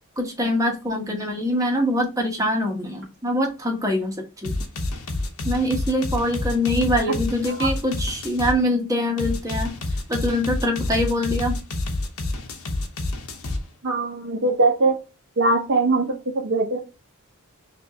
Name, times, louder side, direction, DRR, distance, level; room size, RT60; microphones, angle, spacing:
voice 1, 0.2-4.1 4.4-4.5 5.4-9.7 10.1-11.6, left 1 dB, 15° right, 1 dB, 1.1 m, -24 dB
sound 1, 4.4-8.6 9.2-13.6, left 2 dB, 70° left, 1.1 m, -28 dB
voice 2, 13.8-14.9 15.4-16.8, right 3 dB, 55° right, -2 dB, 0.9 m, -21 dB
6.2 x 2.7 x 2.9 m, 0.29 s
head